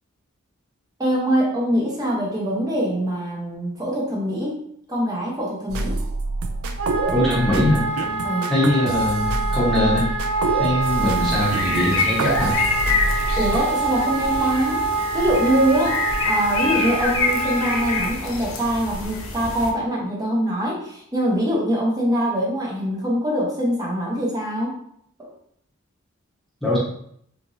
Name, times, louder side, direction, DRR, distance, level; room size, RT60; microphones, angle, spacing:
voice 1, 1.0-4.6 4.9-6.1 8.2-8.5 13.3-14.8 15.1-24.7 25.2-25.3, equal, 15° right, -4 dB, 0.8 m, -23 dB
sound 1, 5.7-13.6, right 2 dB, 80° right, 0.4 m, -27 dB
Wind instrument woodwind instrument, 6.8-18.1, right 3 dB, 65° right, 0.9 m, -26 dB
voice 2, 7.1-7.8 8.5-10.1 10.6-12.6 26.6-26.8, left 1 dB, ahead, -8 dB, 1.0 m, -21 dB
sound 2, 10.8-19.7, left 4 dB, 75° left, 0.5 m, -27 dB
2.9 x 2.6 x 2.6 m, 0.69 s
head